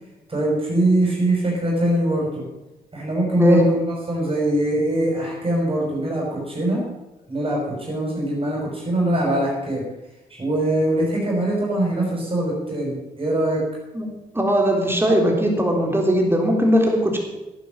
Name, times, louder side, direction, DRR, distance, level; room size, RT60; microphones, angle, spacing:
voice 1, 0.3-2.4 2.9-6.8 7.3-9.8 10.3-13.6, right 1 dB, 35° right, -3 dB, 5.9 m, -22 dB
voice 2, 3.4-3.8 13.9-14.1 14.3-17.2, equal, 15° right, 1 dB, 3.7 m, -19 dB
11.0 x 9.5 x 7.4 m, 1.0 s
cardioid pair, 75°, 16 cm